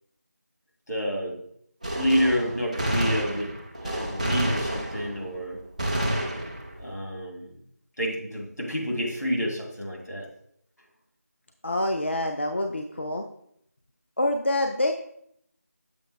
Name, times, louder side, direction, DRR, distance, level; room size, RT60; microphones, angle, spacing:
voice 1, 0.9-1.3 1.9-3.5 3.8-5.6 6.8-7.5 8.0-10.2, equal, 85° left, -1 dB, 2.4 m, -28 dB
Gunshot gunfire, 1.8-5.4 5.8-6.9, right 1 dB, 25° right, 0.6 m, -29 dB
voice 2, 11.6-13.3 14.2-14.9, left 1 dB, 45° left, 4 dB, 0.4 m, -26 dB
6.9 x 5.4 x 3.2 m, 0.70 s
figure-of-eight pair, 170°, 9 cm